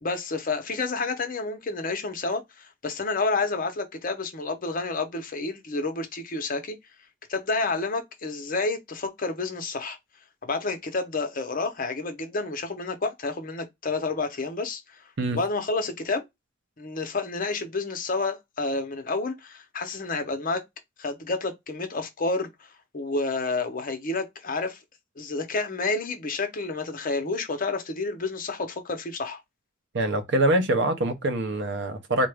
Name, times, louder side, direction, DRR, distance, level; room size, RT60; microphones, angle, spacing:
voice 1, 0.0-6.8 7.3-10.0 10.4-14.8 15.3-16.2 16.8-20.6 21.0-22.5 22.9-24.8 25.2-29.4, left 3 dB, 45° left, 0.8 m, -29 dB
voice 2, 29.9-32.3, right 1 dB, 60° right, 0.7 m, -24 dB
3.6 x 2.5 x 3.4 m
head